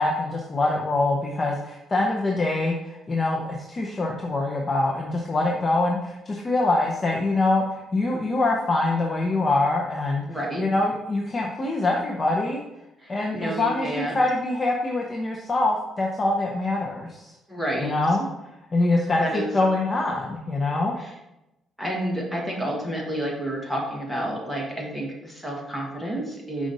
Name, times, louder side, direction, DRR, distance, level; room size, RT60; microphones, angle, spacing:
voice 1, 0.0-10.2 10.6-12.6 13.1-17.3 17.8-18.2 18.7-20.9, left 2 dB, 25° left, -1 dB, 0.6 m, -24 dB
voice 2, 10.3-10.6 13.0-14.2 17.5-17.9 19.2-19.5 21.0-21.1 21.8-26.7, right 1 dB, ahead, -2 dB, 1.3 m, -30 dB
5.2 x 4.8 x 4.0 m, 0.93 s
cardioid pair, 170°, 0 cm